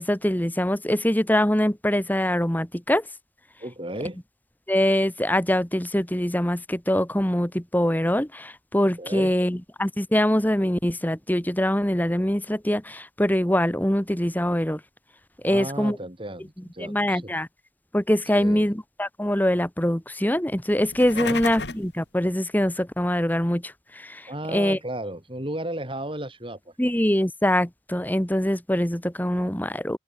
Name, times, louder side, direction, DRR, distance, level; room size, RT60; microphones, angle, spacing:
voice 1, 0.0-3.0 4.7-14.8 15.4-16.0 16.8-17.5 17.9-24.8 26.8-30.0, equal, 10° left, 1.6 m, -23 dB
voice 2, 3.6-4.2 9.0-9.3 15.4-17.3 18.3-18.7 21.1-21.4 24.3-26.9, right 1 dB, 30° right, 7.1 m, -34 dB
sound 1, 20.8-21.9, left 4 dB, 85° left, 2.5 m, -32 dB
open air
head